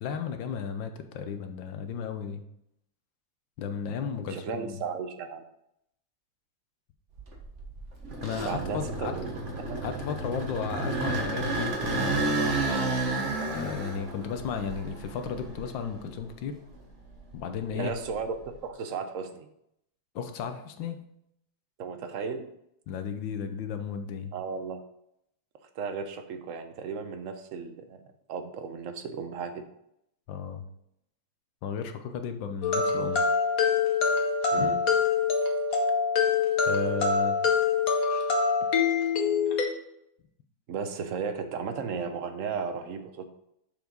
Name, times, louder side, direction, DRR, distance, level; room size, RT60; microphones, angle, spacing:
voice 1, 0.0-2.4 3.6-4.8 8.2-9.1 9.8-12.5 13.5-16.6 17.3-17.9 20.1-21.0 22.9-24.3 30.3-30.6 31.6-33.2 34.6-34.7 36.7-37.4, left 6 dB, 75° left, 7 dB, 1.5 m, -34 dB
voice 2, 4.3-5.4 8.4-9.8 17.7-19.5 21.8-22.5 24.3-24.8 25.7-28.0 28.3-29.6 34.5-34.8 40.7-43.3, right 5 dB, 60° right, 7 dB, 0.9 m, -35 dB
sound 1, 7.2-16.2 16.7-18.5, right 2 dB, 40° right, 1.4 m, -32 dB
sound 2, 32.6-39.6, left 5 dB, 50° left, 1.5 m, -25 dB
7.1 x 4.7 x 5.3 m, 0.78 s
omnidirectional pair, 2.1 m